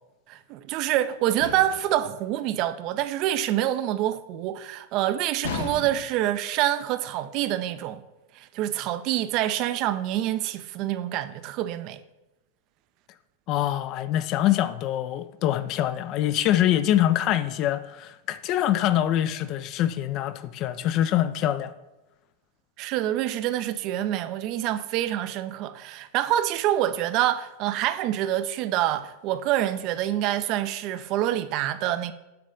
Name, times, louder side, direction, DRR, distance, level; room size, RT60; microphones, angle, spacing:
voice 1, 0.3-8.0 8.4-12.0 22.8-32.1, right 12 dB, 40° right, 0.4 m, -26 dB
sound 1, 1.4-2.0 5.4-6.3, left 5 dB, 60° left, 0.7 m, -34 dB
voice 2, 13.5-21.7, left 12 dB, 40° left, 0.3 m, -24 dB
6.7 x 3.1 x 5.2 m
figure-of-eight pair, 90°, 0 cm